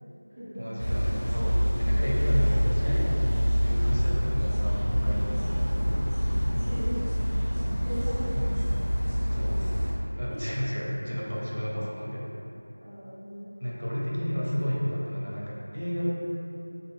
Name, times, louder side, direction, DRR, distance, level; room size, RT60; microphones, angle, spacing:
voice 1, 0.6-3.0 3.6-6.6 8.3-8.7 9.2-9.6 10.2-12.2 13.6-16.1, equal, 75° right, -5 dB, 0.7 m, -32 dB
sound 1, 0.8-9.9, equal, 75° left, 1.0 m, -26 dB
voice 2, 2.8-3.1 6.7-6.9 7.8-8.5 10.3-10.4 11.4-11.8 12.8-13.5, equal, 15° right, -15 dB, 0.5 m, -39 dB
2.6 x 2.2 x 3.1 m, 2.9 s
figure-of-eight pair, 175°, 0 cm